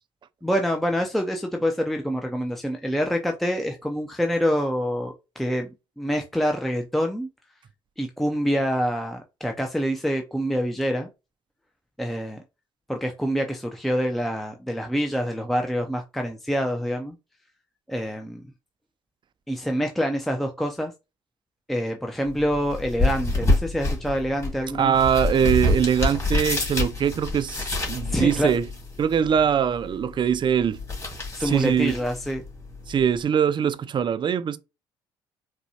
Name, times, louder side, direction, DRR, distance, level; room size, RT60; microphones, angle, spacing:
voice 1, 0.4-7.3 8.0-11.1 12.0-12.4 12.9-17.1 17.9-18.4 19.5-20.9 21.7-24.9 28.0-28.5 31.3-32.4, equal, ahead, 0.6 m, -26 dB
sound 1, 22.2-33.2, left 2 dB, 25° left, 2.1 m, -28 dB
voice 2, 24.8-28.7 29.0-30.8 31.4-32.0 32.9-34.6, right 8 dB, 40° right, 0.5 m, -22 dB
4.0 x 2.2 x 2.8 m
hypercardioid pair, 60°, 12 cm